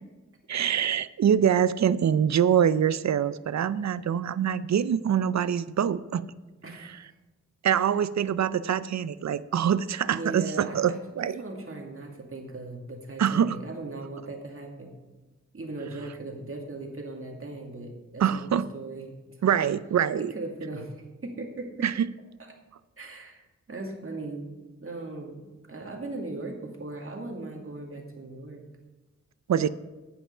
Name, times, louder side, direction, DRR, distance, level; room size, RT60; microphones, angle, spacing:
voice 1, 0.5-6.2 7.6-11.4 13.2-13.6 18.2-18.7 19.4-20.3 21.8-22.1 29.5-29.7, right 8 dB, 70° right, 16 dB, 0.5 m, -24 dB
voice 2, 6.6-7.1 7.7-7.9 10.1-14.9 15.5-19.4 20.2-21.0 21.2-21.9 22.4-22.5 23.0-28.6, right 2 dB, 50° right, 2 dB, 2.3 m, -38 dB
16.0 x 5.7 x 5.5 m, 1.2 s
wide cardioid pair, 70°, 29 cm